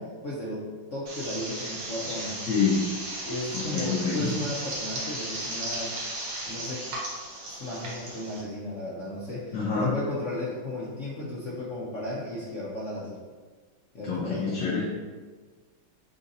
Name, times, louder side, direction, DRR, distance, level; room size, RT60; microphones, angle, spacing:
voice 1, 0.0-2.4 3.3-5.9 6.4-6.9 7.5-13.2 13.9-14.7, left 1 dB, 85° left, -6 dB, 0.6 m, -34 dB
sound 1, 1.1-8.4, right 1 dB, 65° right, 1.5 m, -35 dB
voice 2, 2.5-2.9 3.5-4.3 9.5-9.9 14.1-15.0, left 5 dB, 65° left, -5 dB, 1.3 m, -27 dB
3.9 x 3.8 x 2.7 m, 1.4 s
omnidirectional pair, 2.2 m